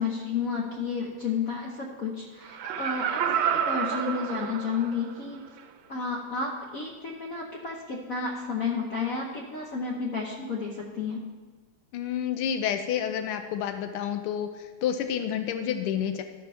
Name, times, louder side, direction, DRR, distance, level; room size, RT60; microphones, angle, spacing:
voice 1, 0.0-5.4 5.9-11.3, left 5 dB, 55° left, -2 dB, 1.1 m, -31 dB
Laughter, 2.4-5.1 5.6-5.7, right 8 dB, 75° right, 1.4 m, -29 dB
voice 2, 11.9-16.2, left 9 dB, 90° left, 8 dB, 1.5 m, -29 dB
12.5 x 5.1 x 5.6 m, 1.3 s
omnidirectional pair, 2.4 m